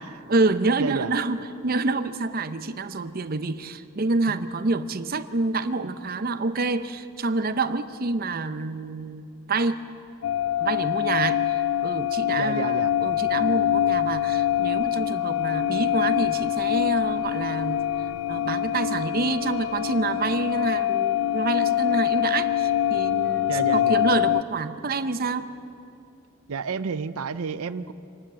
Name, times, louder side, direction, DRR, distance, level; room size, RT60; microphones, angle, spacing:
voice 1, 0.3-1.4 1.6-9.8 10.6-17.8 18.3-25.5, right 3 dB, 45° right, 11 dB, 0.7 m, -27 dB
voice 2, 0.8-1.2 12.4-12.9 23.5-24.0 26.5-27.9, right 5 dB, 85° right, 13 dB, 0.6 m, -30 dB
sound 1, 10.2-24.4, left 11 dB, 75° left, 0.4 m, -24 dB
26.0 x 12.5 x 8.8 m, 2.6 s
head